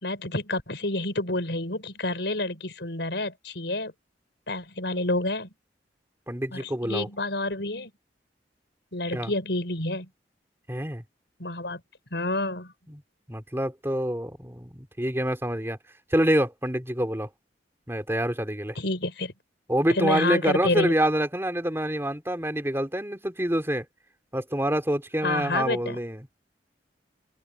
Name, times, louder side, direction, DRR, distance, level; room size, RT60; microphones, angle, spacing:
voice 1, 0.0-3.9 4.5-5.5 6.5-7.9 8.9-10.1 11.4-11.8 12.1-12.7 18.8-19.3 20.0-20.9 25.2-26.0, left 2 dB, 70° left, 5.4 m, -29 dB
voice 2, 6.3-7.1 9.1-9.3 10.7-11.0 12.9-13.0 13.3-15.8 16.1-17.3 17.9-18.8 19.7-23.8 24.3-26.3, right 1 dB, 15° right, 2.9 m, -26 dB
open air
head